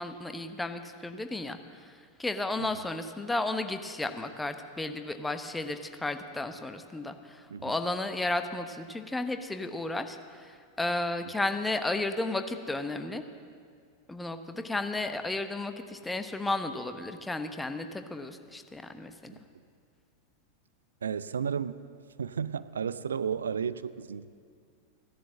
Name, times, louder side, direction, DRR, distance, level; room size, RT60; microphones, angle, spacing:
voice 1, 0.0-1.9 2.2-13.2 14.1-19.3, left 2 dB, 5° left, 8 dB, 1.1 m, -33 dB
voice 2, 21.0-21.8 22.2-24.3, right 7 dB, 70° right, 16 dB, 0.5 m, -33 dB
16.5 x 11.5 x 7.5 m, 2.1 s
figure-of-eight pair, 90°, 0 cm